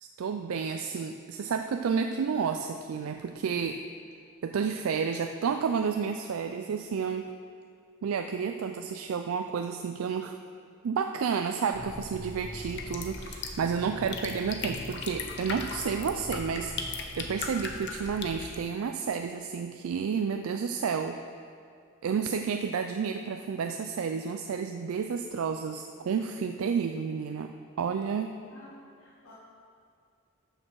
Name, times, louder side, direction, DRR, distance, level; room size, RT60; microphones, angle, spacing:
voice 1, 0.0-3.8 4.4-7.3 8.0-10.4 10.8-21.2 22.0-28.3, right 6 dB, 85° right, 6 dB, 0.4 m, -31 dB
sound 1, 11.7-18.6, left 3 dB, 55° left, 0.9 m, -38 dB
voice 2, 28.5-29.3, left 1 dB, 85° left, -8 dB, 1.6 m, -52 dB
12.5 x 6.6 x 4.6 m, 2.3 s
head